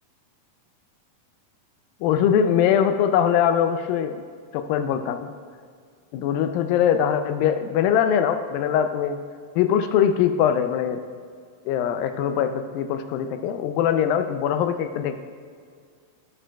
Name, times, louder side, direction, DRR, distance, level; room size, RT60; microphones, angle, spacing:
voice 1, 2.0-4.2 4.5-5.3 6.1-9.2 9.6-11.0 11.7-15.2, left 9 dB, 90° left, 8 dB, 2.3 m, -22 dB
11.5 x 9.5 x 2.3 m, 2.1 s
omnidirectional pair, 4.0 m